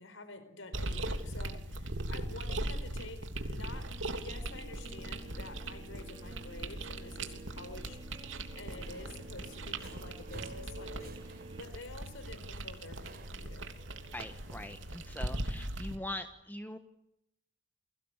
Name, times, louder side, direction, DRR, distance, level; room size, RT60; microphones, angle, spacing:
voice 1, 0.0-13.7, left 2 dB, 80° left, 11 dB, 4.8 m, -49 dB
sound 1, 0.7-16.0, right 1 dB, 75° right, 3.2 m, -40 dB
Guitar, 3.7-11.6, right 2 dB, 25° right, 5.0 m, -52 dB
Subway metro underground, 8.7-15.4, right 1 dB, 50° right, 5.1 m, -51 dB
voice 2, 14.1-16.8, left 1 dB, 10° left, 8 dB, 1.5 m, -42 dB
30.0 x 23.0 x 8.3 m, 0.80 s
head